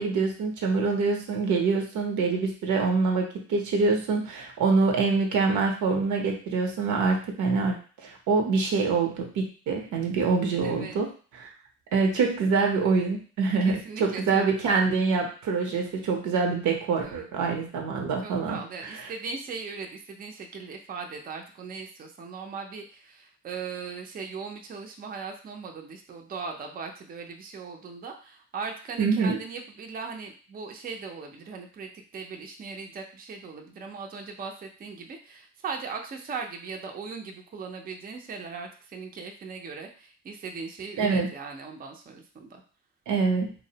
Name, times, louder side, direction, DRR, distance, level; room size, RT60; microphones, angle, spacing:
voice 1, 0.0-7.8 8.0-11.1 11.4-11.5 11.9-18.6 18.9-19.1 29.0-29.4 41.0-41.3 43.1-43.5, right 4 dB, 80° right, 2 dB, 0.7 m, -25 dB
voice 2, 10.6-11.0 13.6-14.4 17.0-17.3 18.2-42.6, right 5 dB, 30° right, 3 dB, 0.4 m, -39 dB
2.5 x 2.0 x 2.7 m, 0.40 s
cardioid pair, 90°, 30 cm